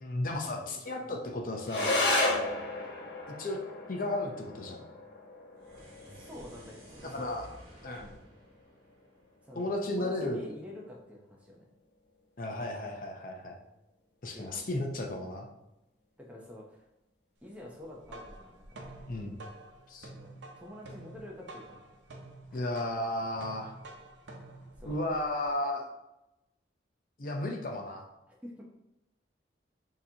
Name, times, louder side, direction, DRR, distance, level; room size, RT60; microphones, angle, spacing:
voice 1, 0.0-2.0 3.4-3.6 3.9-4.8 7.0-7.5 7.8-8.1 9.5-10.4 12.4-13.6 14.2-15.5 19.1-19.4 19.9-20.1 22.5-23.7 24.9-25.8 27.2-28.1, left 1 dB, 45° left, 1 dB, 0.6 m, -34 dB
sound 1, 1.6-10.6, left 2 dB, 75° left, 1.0 m, -35 dB
voice 2, 2.3-2.6 6.1-7.4 7.9-8.2 9.4-11.7 14.3-14.7 16.2-16.9 17.4-19.0 20.0-21.8 22.5-22.7 24.8-25.0 28.3-28.6, left 1 dB, 5° right, -2 dB, 0.7 m, -48 dB
sound 2, 5.5-9.9, right 1 dB, 50° right, 1.5 m, -54 dB
sound 3, 17.8-25.5, right 2 dB, 80° right, 0.8 m, -49 dB
6.5 x 2.9 x 2.8 m, 0.92 s
head